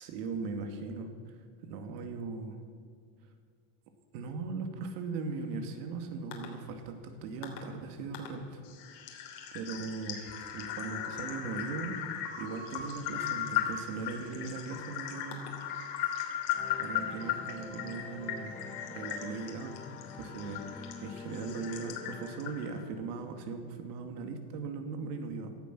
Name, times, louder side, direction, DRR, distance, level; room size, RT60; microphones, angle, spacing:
voice 1, 0.0-2.6 4.1-8.6 8.9-9.0 9.5-10.2 10.5-15.6 16.8-18.6 18.9-19.8 20.2-25.6, right 4 dB, 80° right, 6 dB, 2.6 m, -39 dB
sound 1, 6.3-6.5 7.4-7.6 8.1-8.3 8.6-22.8, left 10 dB, 80° left, 3.3 m, -38 dB
sound 2, 16.5-23.4, left 4 dB, 15° left, 1.3 m, -47 dB
17.5 x 13.0 x 6.2 m, 2.2 s
cardioid pair, 165°, 46 cm